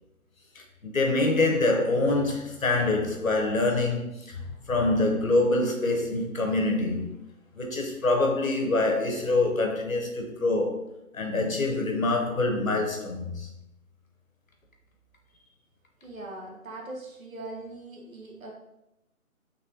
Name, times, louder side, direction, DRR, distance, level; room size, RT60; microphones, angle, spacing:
voice 1, 0.5-7.1 7.5-10.9 11.1-13.5, left 2 dB, 65° left, 1.1 m, -25 dB
voice 2, 16.0-18.5, right 2 dB, 70° right, 1.3 m, -41 dB
4.1 x 3.4 x 2.8 m
figure-of-eight pair, 180°, 43 cm